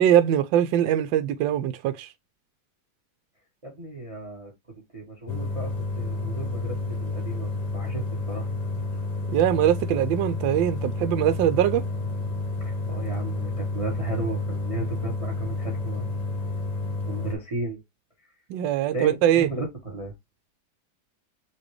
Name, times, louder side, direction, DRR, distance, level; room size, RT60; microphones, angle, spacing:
voice 1, 0.0-2.1 9.3-11.8 18.5-19.5, right 11 dB, 80° right, 1.3 m, -22 dB
voice 2, 3.6-4.5 4.9-8.5 12.6-16.1 17.1-17.8 18.9-19.1 19.4-20.1, right 3 dB, 20° right, 1.1 m, -34 dB
sound 1, 5.3-17.4, left 2 dB, 35° left, 0.7 m, -30 dB
5.8 x 2.8 x 3.0 m
omnidirectional pair, 2.1 m